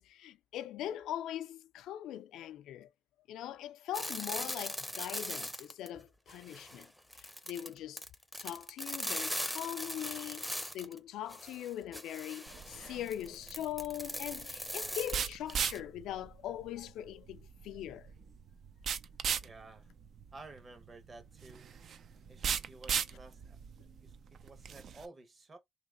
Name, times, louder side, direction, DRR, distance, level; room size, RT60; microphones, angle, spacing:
voice 1, 0.0-2.9 3.3-6.9 7.2-8.0 8.4-18.1, left 12 dB, 85° left, 0.3 m, -41 dB
sound 1, 3.9-6.0 6.3-11.0 11.3-15.8, equal, ahead, 0.6 m, -40 dB
sound 2, 12.5-25.1, right 7 dB, 60° right, 0.4 m, -39 dB
voice 2, 19.4-19.9 20.3-21.7 22.3-23.6 24.0-24.1 24.4-25.6, right 3 dB, 35° right, 1.3 m, -53 dB
3.2 x 3.0 x 3.7 m
cardioid pair, 90°, 0 cm